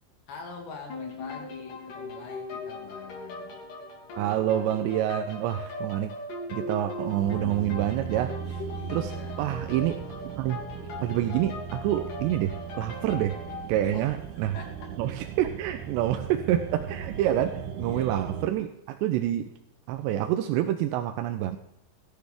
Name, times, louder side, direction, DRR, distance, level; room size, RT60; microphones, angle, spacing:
voice 1, 0.3-3.6 8.7-9.6 13.8-14.1 14.5-15.0 17.8-18.3, left 4 dB, 75° left, 1 dB, 4.6 m, -44 dB
sound 1, 0.9-13.7, left 2 dB, 55° left, 4.0 m, -39 dB
voice 2, 4.2-6.1 6.5-9.1 9.4-10.0 10.4-10.6 11.0-13.4 13.7-14.5 15.0-19.5 19.9-21.6, right 12 dB, 90° right, 6 dB, 2.9 m, -27 dB
sound 2, 7.2-18.5, right 8 dB, 75° right, 2.7 m, -38 dB
18.5 x 12.0 x 3.6 m, 0.83 s
omnidirectional pair, 5.0 m